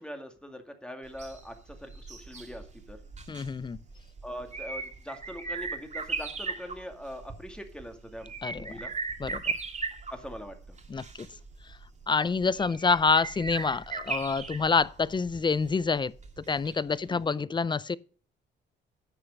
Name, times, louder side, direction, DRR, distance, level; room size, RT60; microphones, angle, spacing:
voice 1, 0.0-3.0 4.2-8.9 10.1-10.8 17.1-17.4, equal, 5° left, 2.2 m, -42 dB
sound 1, 1.1-17.0 17.3-17.4, right 4 dB, 35° right, 2.4 m, -38 dB
voice 2, 3.3-3.8 8.4-8.8 9.2-9.4 10.9-11.3 11.6-11.8 12.1-18.0, left 4 dB, 25° left, 0.4 m, -27 dB
10.5 x 6.6 x 5.3 m
cardioid pair, 90°, 20 cm